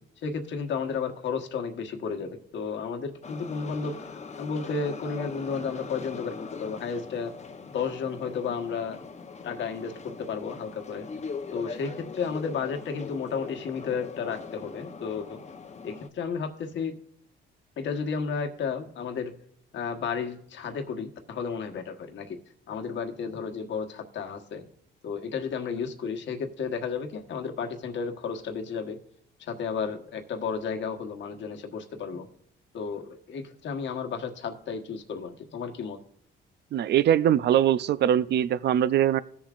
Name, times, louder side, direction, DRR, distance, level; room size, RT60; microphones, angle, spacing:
voice 1, 0.2-4.1 4.4-7.3 7.7-9.0 9.4-11.1 11.5-15.4 15.8-16.9 17.8-19.3 19.7-22.4 22.7-24.6 25.0-29.0 29.4-32.3 32.7-36.0, left 5 dB, 70° left, 5 dB, 1.3 m, -33 dB
sound 1, 3.2-16.1, left 5 dB, 35° left, 0.8 m, -41 dB
voice 2, 36.7-39.2, right 10 dB, 60° right, 16 dB, 0.5 m, -22 dB
17.0 x 7.2 x 2.5 m, 0.69 s
cardioid pair, 90°, 20 cm